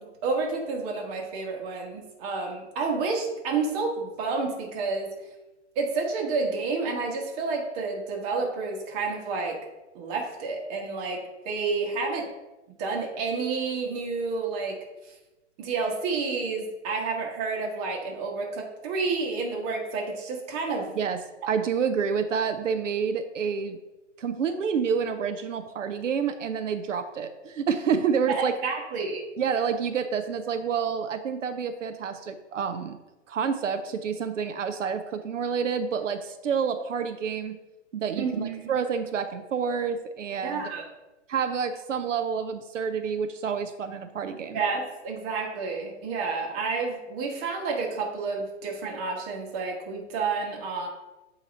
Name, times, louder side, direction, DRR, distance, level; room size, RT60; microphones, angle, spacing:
voice 1, 0.0-5.1 5.7-9.6 9.9-12.3 12.8-14.8 15.0-15.1 15.6-20.9 28.3-29.2 38.2-38.7 40.4-40.9 44.5-50.9, right 4 dB, 30° right, 1 dB, 1.3 m, -30 dB
voice 2, 21.5-23.8 24.2-28.5 29.4-33.0 33.3-37.6 37.9-40.7 41.3-44.6, right 6 dB, 90° right, 8 dB, 0.6 m, -28 dB
8.4 x 3.0 x 3.9 m, 1.1 s
hypercardioid pair, 135°, 36 cm